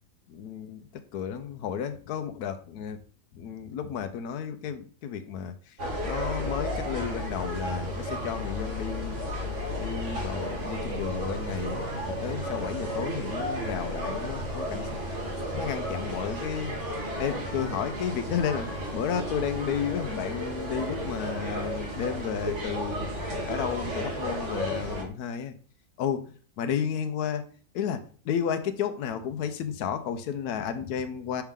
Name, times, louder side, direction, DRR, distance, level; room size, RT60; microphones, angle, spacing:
voice 1, 0.3-0.8 1.1-3.0 3.3-5.6 6.0-9.2 9.8-14.8 15.3-16.8 17.1-23.1 23.4-25.6 26.0-27.4 27.7-31.4, left 8 dB, 80° left, 8 dB, 1.1 m, -32 dB
sound 1, 5.8-25.0, equal, 50° right, 1.7 m, -33 dB
5.8 x 4.5 x 3.6 m, 0.42 s
omnidirectional pair, 1.6 m